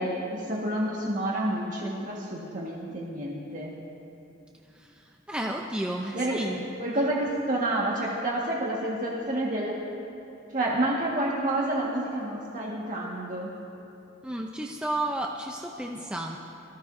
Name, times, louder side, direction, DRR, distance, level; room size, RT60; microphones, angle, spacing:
voice 1, 0.0-3.7 6.1-6.5 6.8-9.8 10.5-13.5, right 1 dB, 40° right, -4 dB, 1.7 m, -29 dB
voice 2, 4.7-6.6 14.2-16.4, right 1 dB, 5° right, 0 dB, 0.5 m, -32 dB
24.0 x 15.0 x 2.7 m, 2.8 s
head